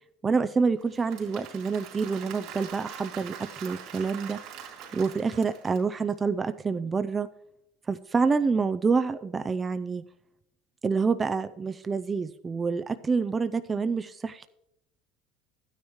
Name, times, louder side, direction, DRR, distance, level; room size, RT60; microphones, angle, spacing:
voice 1, 0.2-4.4 4.9-7.3 7.9-10.0 10.8-14.5, right 4 dB, 25° right, 10 dB, 0.4 m, -27 dB
Applause / Crowd, 0.8-6.1, right 8 dB, 65° right, 2.7 m, -43 dB
12.5 x 9.5 x 3.0 m, 0.80 s
supercardioid pair, 95°, 0 cm